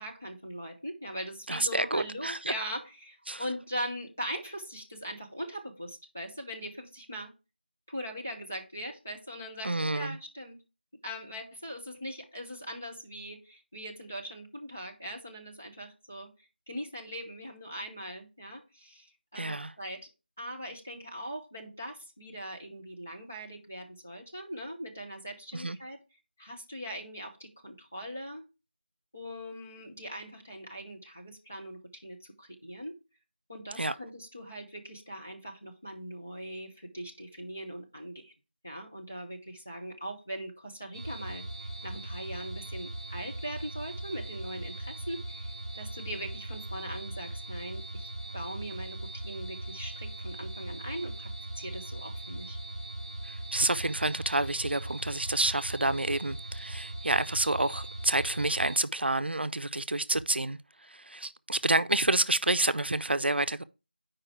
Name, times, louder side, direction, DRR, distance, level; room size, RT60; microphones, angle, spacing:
voice 1, 0.0-7.3 7.9-10.6 11.0-16.3 16.7-20.1 20.4-26.0 26.4-28.4 29.1-33.0 33.5-38.3 38.6-52.6, equal, 10° left, 0.3 m, -41 dB
voice 2, 1.5-2.5 3.3-3.4 9.6-10.2 19.4-19.7 25.5-25.8 33.8-33.9 53.2-63.6, right 2 dB, 80° right, 0.5 m, -29 dB
sound 1, 40.9-58.8, right 1 dB, 30° right, 0.6 m, -40 dB
4.9 x 4.5 x 6.0 m
figure-of-eight pair, 175°, 6 cm